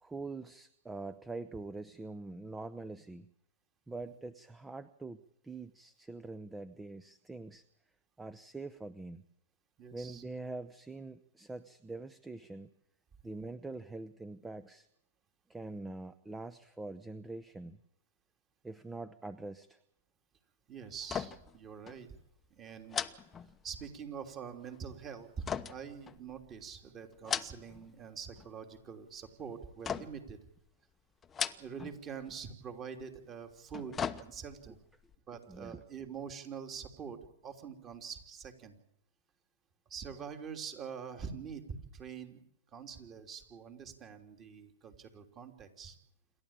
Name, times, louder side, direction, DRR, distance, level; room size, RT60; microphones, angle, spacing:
voice 1, 0.0-3.3 3.9-7.6 8.2-9.2 9.9-12.7 13.2-14.9 15.5-17.8 18.6-19.8 35.5-35.8, right 3 dB, 10° right, 15 dB, 0.8 m, -44 dB
voice 2, 9.8-10.2 20.7-22.1 22.5-23.4 23.6-30.4 31.6-34.8 35.3-38.8 39.9-42.4 42.7-46.0, right 6 dB, 25° right, 6 dB, 3.1 m, -45 dB
sound 1, 21.0-21.6 21.9-22.0 22.9-24.0 25.5-26.6 27.1-27.9 28.2-28.8 29.8-30.4 31.2-32.0 32.3-32.4 33.5-34.7 35.1-35.2, left 7 dB, 15° left, 0.9 m, -38 dB
27.5 x 12.5 x 8.8 m, 0.77 s
hypercardioid pair, 125°, 0 cm